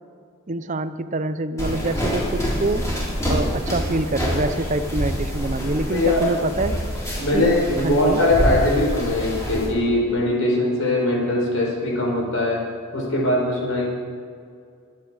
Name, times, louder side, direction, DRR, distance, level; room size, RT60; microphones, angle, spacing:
voice 1, 0.5-2.9 3.3-6.8 7.3-7.5 7.8-8.2, right 2 dB, 35° right, 12 dB, 0.6 m, -25 dB
sound 1, 1.6-9.7, equal, 15° left, 5.0 m, -26 dB
voice 2, 5.9-6.2 7.2-12.7 12.9-13.8, left 1 dB, 70° left, -1 dB, 4.7 m, -21 dB
23.5 x 9.7 x 5.0 m, 2.2 s
head